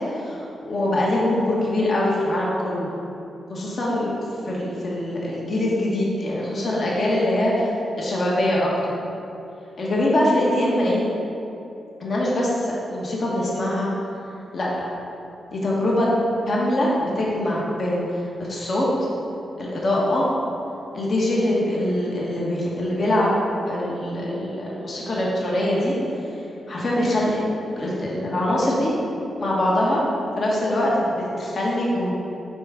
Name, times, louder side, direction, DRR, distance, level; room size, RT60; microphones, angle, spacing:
voice 1, 0.1-2.9 3.5-4.2 4.4-7.7 8.0-8.9 9.8-11.0 12.0-13.9 14.5-14.9 15.5-18.0 18.4-18.9 19.6-20.3 20.9-25.9 26.7-27.4 27.8-28.9 29.4-30.1 30.4-32.1, left 1 dB, 50° left, -5 dB, 1.3 m, -23 dB
5.9 x 4.9 x 5.0 m, 2.9 s
cardioid pair, 85°, 0 cm